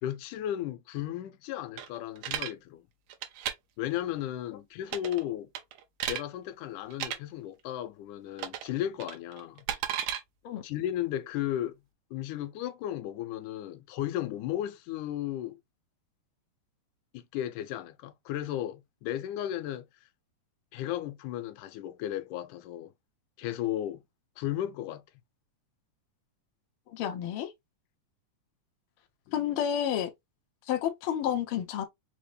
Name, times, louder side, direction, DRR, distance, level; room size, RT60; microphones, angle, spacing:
voice 1, 0.0-2.9 3.8-5.5 6.1-9.6 10.6-11.8 12.1-15.6 17.1-19.9 20.7-22.9 23.4-24.0 24.4-25.0 29.3-29.6, left 12 dB, 90° left, 2.1 m, -35 dB
sound 1, 1.8-2.5 3.1-3.5 4.9-5.2 5.5-6.2 6.9-7.2 8.4-8.7 9.0-10.2, right 10 dB, 75° right, 1.8 m, -33 dB
voice 2, 26.9-27.5 29.3-30.1 30.7-31.8, left 9 dB, 65° left, 1.3 m, -30 dB
5.1 x 2.2 x 3.2 m
omnidirectional pair, 3.4 m